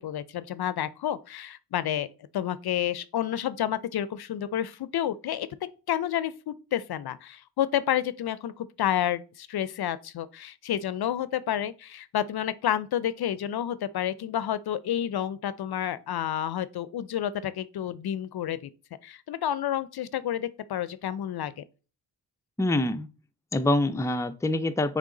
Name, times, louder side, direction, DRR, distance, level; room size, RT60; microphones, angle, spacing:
voice 1, 0.0-2.1 2.3-5.5 5.9-18.7 19.0-21.6, left 10 dB, 60° left, 0.5 m, -30 dB
voice 2, 22.6-23.1 23.5-25.0, left 2 dB, 5° left, 0.5 m, -25 dB
8.0 x 3.3 x 3.8 m
cardioid pair, 55°, 43 cm